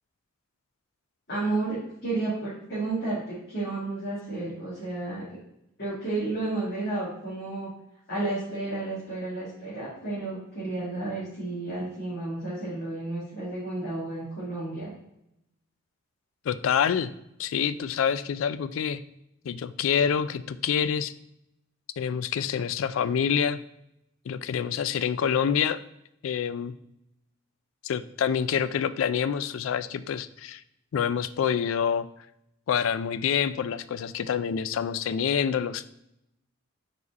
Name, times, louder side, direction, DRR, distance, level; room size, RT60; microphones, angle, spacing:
voice 1, 1.3-5.4 5.8-7.7 8.1-14.9, right 2 dB, 55° left, -11 dB, 2.4 m, -32 dB
voice 2, 16.5-17.1 17.4-19.0 19.4-21.1 22.0-23.6 24.3-25.8 26.2-26.7 27.8-30.6 30.9-32.1 32.7-35.9, left 7 dB, 80° left, 15 dB, 0.3 m, -27 dB
4.8 x 4.8 x 4.0 m, 0.81 s
head